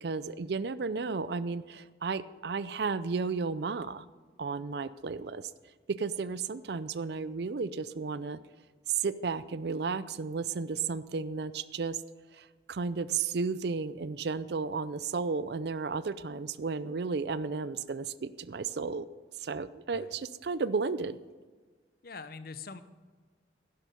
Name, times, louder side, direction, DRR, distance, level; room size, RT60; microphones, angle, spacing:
voice 1, 0.0-4.0 4.4-5.5 5.9-8.4 8.9-12.0 12.3-19.1 19.4-21.2, right 4 dB, 60° right, 16 dB, 0.4 m, -33 dB
voice 2, 22.0-22.8, left 4 dB, 50° left, 12 dB, 0.7 m, -43 dB
11.5 x 11.0 x 5.3 m, 1.4 s
head